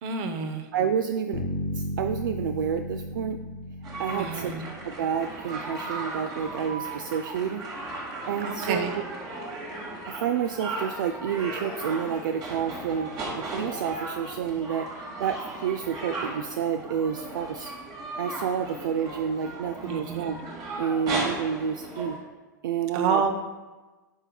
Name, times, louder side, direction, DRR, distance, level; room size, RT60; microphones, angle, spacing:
voice 1, 0.0-0.7 4.1-4.6 8.4-9.0 19.8-20.3 22.9-23.3, right 5 dB, 55° right, 8 dB, 0.8 m, -28 dB
voice 2, 0.7-1.4 1.7-3.4 4.0-4.5 4.8-9.0 10.1-17.7 18.2-20.4 20.8-22.2 22.6-23.2, right 8 dB, 75° right, 7 dB, 0.4 m, -29 dB
Bass guitar, 1.3-5.3, left 1 dB, 80° left, 1.3 m, -34 dB
sound 1, 3.8-22.2, right 2 dB, 40° right, 1.9 m, -36 dB
8.6 x 5.4 x 2.3 m, 1.2 s
hypercardioid pair, 100°, 11 cm